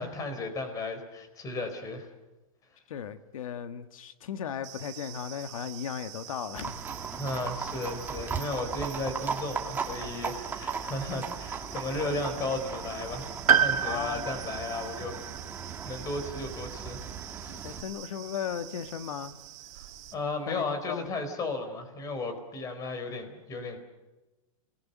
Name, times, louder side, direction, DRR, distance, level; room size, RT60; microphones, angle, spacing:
voice 1, 0.0-2.1 7.2-15.1 15.8-17.0 17.4-17.6 19.7-19.9 20.1-23.8, left 2 dB, 20° left, 8 dB, 4.2 m, -34 dB
voice 2, 2.9-6.7 13.8-14.7 17.6-19.3 20.5-21.1, left 8 dB, 75° left, 9 dB, 1.7 m, -36 dB
sound 1, 4.6-20.1, right 14 dB, 55° right, 2.7 m, -46 dB
Livestock farm animals working animals, 6.5-17.8, right 5 dB, 10° right, 2.0 m, -37 dB
Piano, 13.5-17.4 17.6-17.7 18.9-19.0, right 8 dB, 90° right, 1.5 m, -29 dB
29.0 x 19.5 x 8.1 m, 1.1 s
hypercardioid pair, 150°, 18 cm